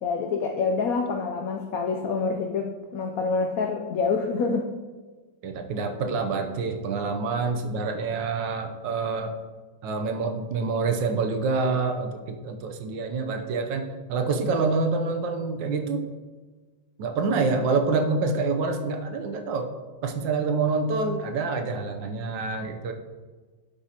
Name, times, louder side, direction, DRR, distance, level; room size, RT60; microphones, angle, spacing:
voice 1, 0.0-4.7, left 4 dB, 85° left, 4 dB, 0.7 m, -27 dB
voice 2, 5.4-9.3 9.8-16.1 17.0-19.7 20.0-22.9, right 4 dB, 70° right, 5 dB, 1.4 m, -27 dB
12.0 x 5.1 x 2.8 m, 1.3 s
omnidirectional pair, 2.2 m